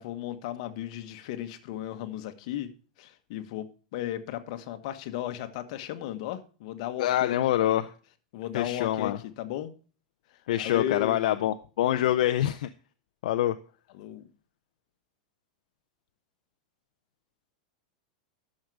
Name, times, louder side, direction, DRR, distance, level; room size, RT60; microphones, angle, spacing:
voice 1, 0.0-2.7 3.0-7.7 8.3-9.7 10.6-11.2 13.9-14.3, left 12 dB, 55° left, 8 dB, 1.3 m, -35 dB
voice 2, 7.0-7.9 8.5-9.2 10.5-12.7 13.2-13.5, left 12 dB, 70° left, 8 dB, 0.6 m, -25 dB
12.0 x 6.5 x 4.7 m, 0.37 s
supercardioid pair, 160°, 4 cm